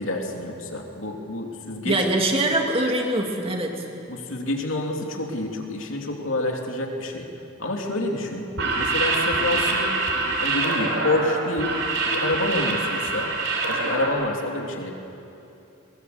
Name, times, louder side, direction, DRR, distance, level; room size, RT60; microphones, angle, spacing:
voice 1, 0.0-2.0 4.1-7.3 7.6-8.5 8.8-9.9 10.4-11.8 12.0-13.3 13.7-14.9, left 1 dB, 70° left, 1 dB, 2.9 m, -28 dB
voice 2, 1.8-3.9, right 1 dB, 30° right, 2 dB, 2.4 m, -23 dB
sound 1, 8.5-14.1, right 3 dB, 60° right, 4.3 m, -25 dB
21.5 x 20.5 x 8.0 m, 2.8 s
head